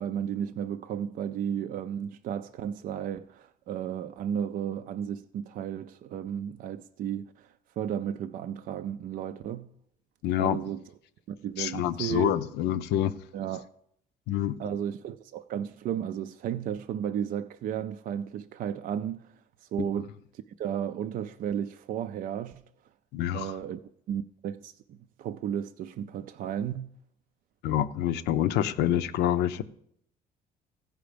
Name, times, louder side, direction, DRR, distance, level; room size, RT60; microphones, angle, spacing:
voice 1, 0.0-9.7 10.4-10.8 11.3-12.4 13.3-13.7 14.6-19.3 19.6-20.1 20.6-22.6 23.3-23.8 24.1-26.9, right 9 dB, 55° right, 0.4 m, -34 dB
voice 2, 10.2-10.6 11.6-13.1 14.3-14.6 23.1-23.5 27.6-29.6, left 11 dB, 80° left, 0.6 m, -27 dB
15.0 x 5.0 x 5.1 m
cardioid pair, 110°, 17 cm